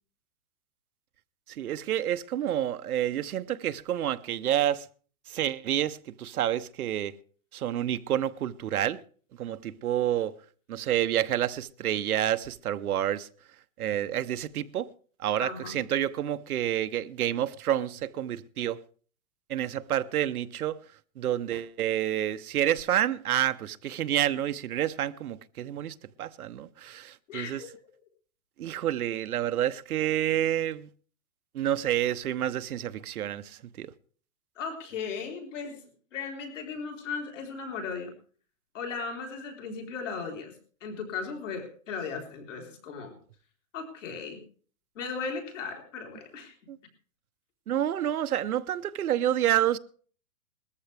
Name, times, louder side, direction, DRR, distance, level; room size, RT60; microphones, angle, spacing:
voice 1, 1.5-4.9 5.3-7.2 7.5-9.0 9.4-10.3 10.7-13.3 13.8-14.9 15.2-18.8 19.5-20.8 21.2-27.6 28.6-30.9 31.5-33.9 46.7-46.8 47.7-49.8, right 11 dB, 75° right, 0.9 m, -29 dB
voice 2, 15.4-15.8 27.3-27.7 34.6-35.8 36.1-38.1 38.7-43.1 43.7-44.4 44.9-46.6, left 5 dB, 55° left, 4.1 m, -37 dB
20.0 x 14.0 x 3.4 m
hypercardioid pair, 175°, 44 cm